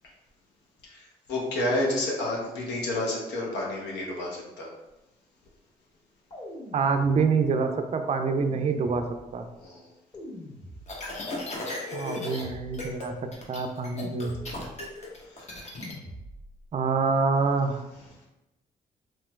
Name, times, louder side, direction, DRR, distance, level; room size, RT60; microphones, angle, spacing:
voice 1, 0.8-4.7 9.6-9.9 15.3-15.4 17.9-18.1, left 1 dB, 80° left, -2 dB, 0.8 m, -30 dB
sound 1, 6.3-7.5 8.2-9.4 10.1-11.3 12.0-13.1 14.0-14.9 15.8-16.7, left 1 dB, 25° left, 1.3 m, -44 dB
voice 2, 6.7-9.0 9.3-9.5 11.9-13.1 13.5-14.3 16.7-17.8, right 5 dB, 40° right, 6 dB, 0.4 m, -26 dB
sound 2, 10.9-12.4 12.7-13.1 13.3-15.9, left 2 dB, 40° left, 0.9 m, -36 dB
3.1 x 2.8 x 2.3 m, 0.98 s
supercardioid pair, 60°, 18 cm